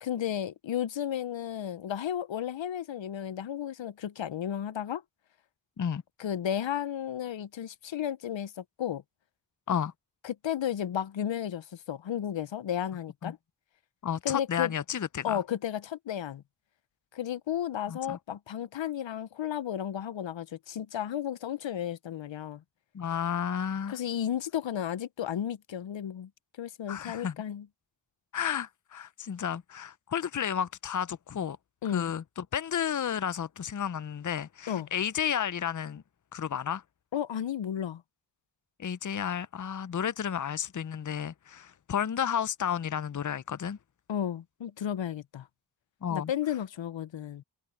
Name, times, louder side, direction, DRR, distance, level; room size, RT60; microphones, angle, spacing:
voice 1, 0.0-5.0 6.2-8.5 8.8-9.0 10.2-13.4 14.2-14.7 15.2-16.4 17.1-22.6 23.9-26.3 26.6-27.7 31.8-32.1 34.7-34.9 37.1-38.0 44.1-45.5 46.1-47.4, left 10 dB, 90° left, 0.6 m, -33 dB
voice 2, 14.0-15.4 17.9-18.2 22.9-24.0 26.9-27.4 28.3-31.6 31.9-36.0 36.3-36.8 38.8-43.8 46.0-46.3, left 8 dB, 45° left, 0.6 m, -32 dB
wide cardioid pair, 65°, 44 cm